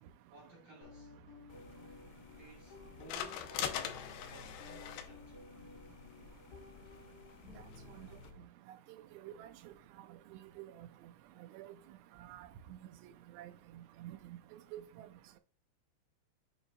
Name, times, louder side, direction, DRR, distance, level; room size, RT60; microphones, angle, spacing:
voice 1, 0.3-1.1 2.4-5.4, right 1 dB, 50° right, 3.7 m, -57 dB
sound 1, 0.8-8.4, left 3 dB, 65° left, 4.5 m, -55 dB
sound 2, 1.5-8.3, left 9 dB, 80° left, 2.2 m, -45 dB
voice 2, 8.9-9.7 10.6-10.9 11.5-11.7 12.2-12.8 13.3-14.4 14.7-15.1, right 13 dB, 80° right, 2.5 m, -49 dB
8.7 x 4.9 x 2.7 m
omnidirectional pair, 5.3 m